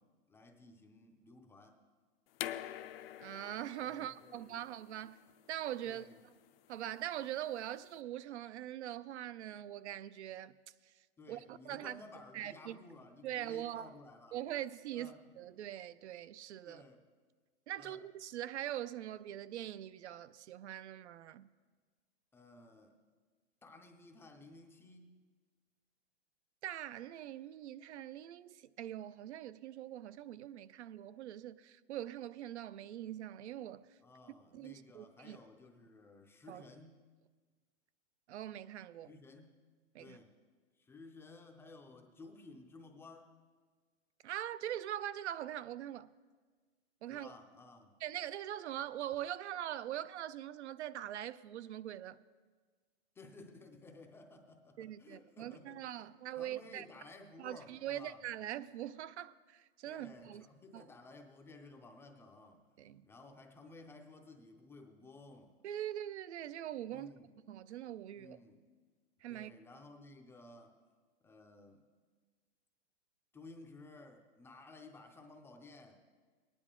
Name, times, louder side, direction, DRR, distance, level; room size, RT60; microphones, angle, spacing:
voice 1, 0.0-1.8 3.8-4.6 5.8-6.3 11.2-14.4 14.9-15.3 16.6-17.0 17.8-18.0 22.3-22.9 23.6-25.1 34.0-37.1 39.0-39.6 40.0-40.3 40.8-43.4 47.1-47.9 53.2-58.2 59.9-62.7 63.0-65.6 66.9-67.3 68.2-68.7 69.3-70.8 71.2-71.8 73.3-76.0, left 2 dB, 5° left, 0.4 m, -56 dB
sound 1, 2.3-7.9, left 13 dB, 60° left, 0.5 m, -47 dB
voice 2, 3.2-5.2 5.5-6.0 6.7-10.5 11.3-12.0 12.3-12.8 13.2-13.9 14.3-16.8 17.7-21.5 26.6-33.9 34.5-35.4 36.5-36.6 38.3-39.1 39.9-40.2 44.2-46.1 47.0-47.3 48.0-52.2 54.8-56.9 57.4-60.5 60.7-60.8 62.8-63.0 65.6-67.1 67.5-68.4 69.2-69.5, right 12 dB, 85° right, 0.5 m, -42 dB
17.0 x 10.0 x 3.7 m
hypercardioid pair, 140°, 33 cm